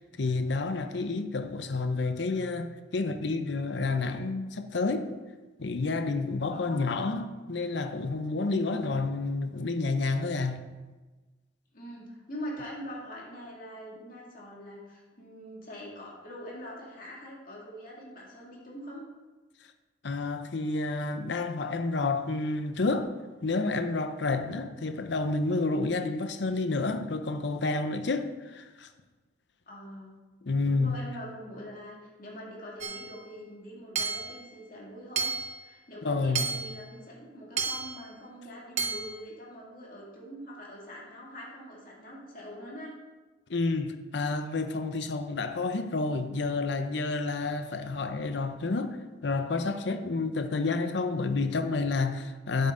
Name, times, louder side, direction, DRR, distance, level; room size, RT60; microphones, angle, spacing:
voice 1, 0.0-5.1 5.6-10.7 20.0-23.1 23.4-28.9 30.4-31.0 36.0-36.5 43.5-52.7, left 3 dB, 60° left, 0.6 m, -30 dB
voice 2, 6.5-6.9 11.7-19.0 29.7-30.1 30.6-35.3 35.6-42.9, equal, 45° left, 2.3 m, -43 dB
Hammer / Chink clink, 32.8-33.2 34.0-34.4 35.2-35.6 36.4-36.8 37.6-38.0 38.8-39.2, right 5 dB, 35° right, 0.7 m, -31 dB
9.2 x 8.2 x 3.8 m
head